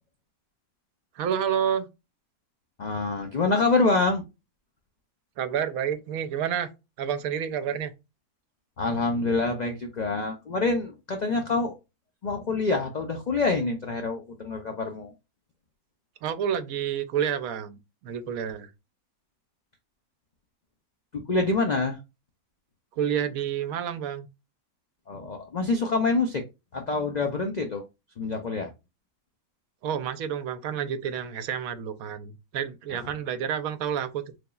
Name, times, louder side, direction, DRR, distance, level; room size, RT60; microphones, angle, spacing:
voice 1, 1.1-1.9 5.4-6.7 7.0-7.9 16.2-18.7 23.0-24.3 29.8-34.4, right 8 dB, 75° right, 1.0 m, -29 dB
voice 2, 2.8-4.2 8.8-11.7 12.2-15.1 21.1-22.0 25.1-26.4 26.7-27.8 28.2-28.7, left 3 dB, 75° left, 0.4 m, -26 dB
3.9 x 3.4 x 2.3 m
omnidirectional pair, 1.5 m